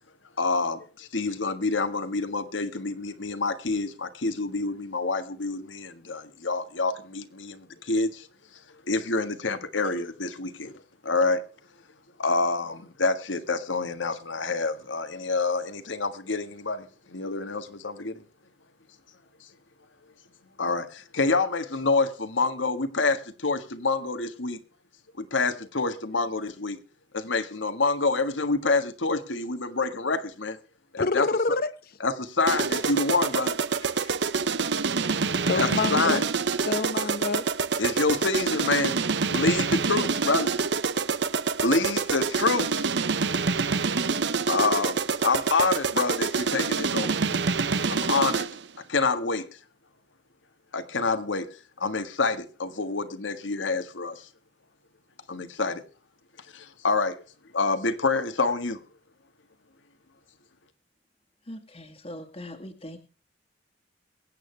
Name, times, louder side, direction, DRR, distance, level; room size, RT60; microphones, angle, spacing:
voice 1, 0.4-8.3 8.9-10.7 11.0-11.4 12.2-18.2 20.6-24.6 25.2-26.8 27.1-30.6 30.9-31.3 32.0-33.5 34.0-34.1 35.5-36.2 37.8-39.0 39.3-40.5 41.6-42.9 44.5-47.2 47.9-48.5 48.9-49.4 50.7-51.5 51.8-54.3 55.3-55.8 56.5-57.2 57.5-58.8, left 3 dB, 85° left, 1.6 m, -27 dB
voice 2, 31.0-31.7 35.5-36.2 36.7-37.5, left 3 dB, 50° left, 0.9 m, -27 dB
sound 1, 32.5-48.6, right 5 dB, 65° right, 0.7 m, -26 dB
voice 3, 61.5-63.0, left 1 dB, 30° left, 1.8 m, -41 dB
23.0 x 8.9 x 3.3 m
head